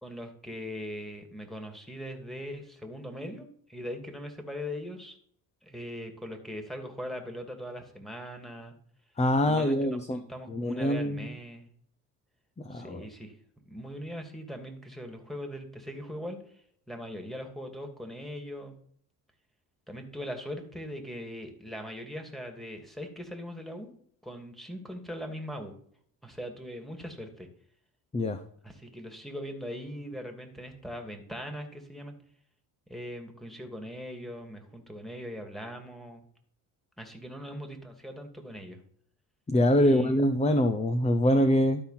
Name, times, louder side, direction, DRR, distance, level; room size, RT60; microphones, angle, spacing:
voice 1, 0.0-5.2 5.6-8.8 9.4-11.7 12.7-13.4 13.7-16.4 16.9-18.8 19.9-23.9 24.2-25.7 26.2-27.5 28.6-32.2 32.9-36.2 37.0-38.8 39.8-40.1, equal, ahead, 3 dB, 2.4 m, -40 dB
voice 2, 9.2-10.2 10.5-11.3 12.6-13.0 28.1-28.4 39.5-41.8, left 1 dB, 15° left, 9 dB, 0.8 m, -24 dB
12.5 x 4.2 x 5.8 m, 0.62 s
supercardioid pair, 80°, 38 cm